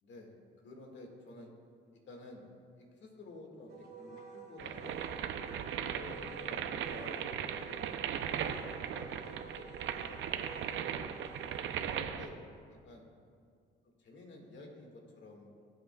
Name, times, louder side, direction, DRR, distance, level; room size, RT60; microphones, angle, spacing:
voice 1, 0.0-0.3 0.6-1.5 2.1-2.5 2.8-4.9 5.7-10.9 11.8-12.4 12.8-13.0 14.0-15.7, left 2 dB, 65° left, 1 dB, 2.0 m, -52 dB
Wind instrument woodwind instrument, 3.7-12.0, right 3 dB, 55° right, 1.9 m, -51 dB
sound 1, 4.6-12.3, right 8 dB, 75° right, 0.6 m, -38 dB
19.0 x 7.8 x 2.3 m, 2.2 s
cardioid pair, 90°, 20 cm